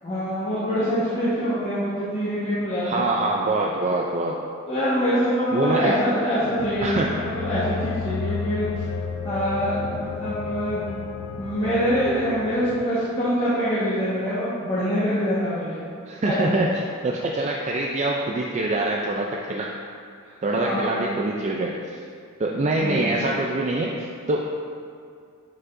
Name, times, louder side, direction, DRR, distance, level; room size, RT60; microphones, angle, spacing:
voice 1, 0.0-3.0 4.7-8.7 9.2-10.8 11.4-15.8 16.2-16.5 20.5-21.0 22.8-23.1, equal, 30° left, -12 dB, 1.3 m, -24 dB
voice 2, 2.8-4.4 5.5-5.9 6.8-7.1 16.1-16.7 17.0-19.7 20.4-22.0 22.4-24.4, right 2 dB, 35° right, -1 dB, 0.4 m, -24 dB
sound 1, 6.6-12.9, left 6 dB, 85° left, 0.3 m, -32 dB
9.6 x 4.9 x 2.6 m, 2.2 s
head